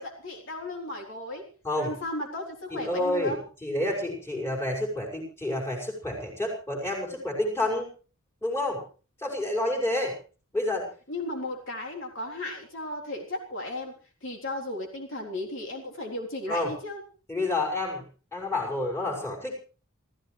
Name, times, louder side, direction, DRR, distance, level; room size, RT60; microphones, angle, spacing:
voice 1, 0.0-1.4 1.8-3.4 11.1-13.9 14.2-17.0, left 1 dB, 60° left, 0 dB, 3.7 m, -35 dB
voice 2, 2.7-7.9 8.4-8.8 9.2-10.2 10.5-10.9 16.5-16.7 17.3-18.0 18.3-19.6, left 1 dB, 10° left, -2 dB, 5.9 m, -29 dB
28.5 x 14.5 x 3.3 m, 0.37 s
head